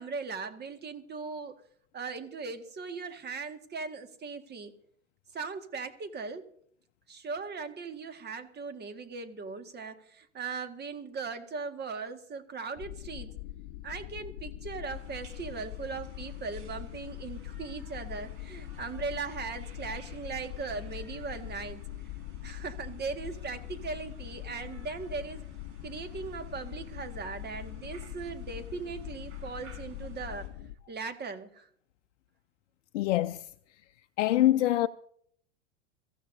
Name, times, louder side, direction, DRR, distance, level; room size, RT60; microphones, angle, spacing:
voice 1, 0.0-1.5 1.9-4.7 5.3-6.5 7.1-13.3 13.8-21.9 22.4-25.4 25.8-30.5 30.9-31.7, right 4 dB, 30° right, 1.9 m, -39 dB
sound 1, 12.8-30.8, left 14 dB, 50° left, 1.0 m, -42 dB
sound 2, 14.9-30.5, right 4 dB, 50° right, 6.4 m, -58 dB
voice 2, 32.9-33.4 34.2-34.9, left 14 dB, 70° left, 0.6 m, -24 dB
23.0 x 15.5 x 2.7 m
hypercardioid pair, 90°, 36 cm